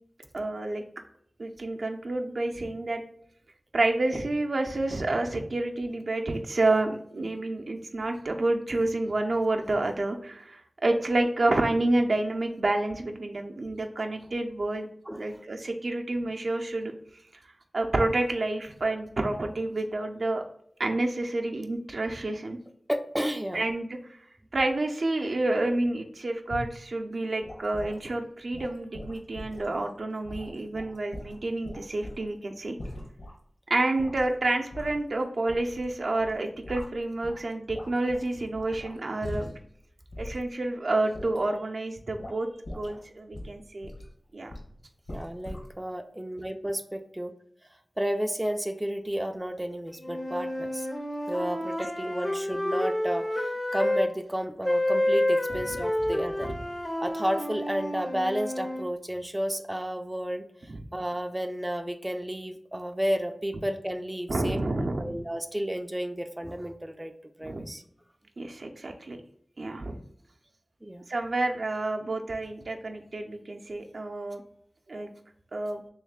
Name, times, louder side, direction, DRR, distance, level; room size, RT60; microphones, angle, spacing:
voice 1, 0.3-0.8 1.4-3.0 3.7-14.9 15.1-16.9 17.7-20.4 20.8-22.6 23.5-23.9 24.5-32.8 33.7-39.5 40.2-42.5 42.7-43.9 44.3-44.5 55.5-55.6 56.4-56.6 60.7-60.8 64.3-65.2 67.4-67.7 68.4-69.2 69.6-70.0 71.1-74.4 74.9-75.1 75.5-75.8, right 2 dB, 70° right, 3 dB, 0.5 m, -29 dB
voice 2, 22.9-23.7 45.1-47.3 48.0-50.9 51.3-56.5 57.0-67.1 67.4-67.8 70.8-71.1, equal, 15° right, 6 dB, 0.3 m, -32 dB
sound 1, 26.5-26.8 27.4-28.0 28.5-29.7 30.2-32.3 32.8-33.3 33.7-34.4 34.7-35.9 36.2-37.4 37.7-39.7 40.1-40.4 41.1-41.4 42.2-42.4 42.6-43.0 43.3-44.1 44.5-44.7 45.1-45.7, left 1 dB, 75° left, 1.2 m, -41 dB
sound 2, 50.0-54.1 54.6-58.9, left 1 dB, 40° left, 0.5 m, -29 dB
3.2 x 3.1 x 3.6 m, 0.65 s
wide cardioid pair, 60°, 0 cm